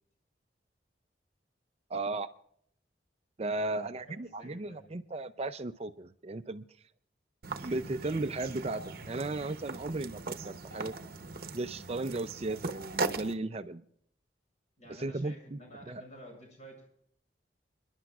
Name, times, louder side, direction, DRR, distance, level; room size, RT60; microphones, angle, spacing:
voice 1, 1.9-2.3 3.4-6.6 7.6-10.9 11.5-13.8 14.9-15.6 15.9-16.0, right 2 dB, 35° right, 11 dB, 0.5 m, -35 dB
voice 2, 3.5-5.0 14.8-16.9, equal, 40° left, 1 dB, 6.9 m, -52 dB
sound 1, 7.4-13.3, right 3 dB, 55° right, 0.9 m, -39 dB
28.5 x 11.5 x 2.4 m, 0.65 s
head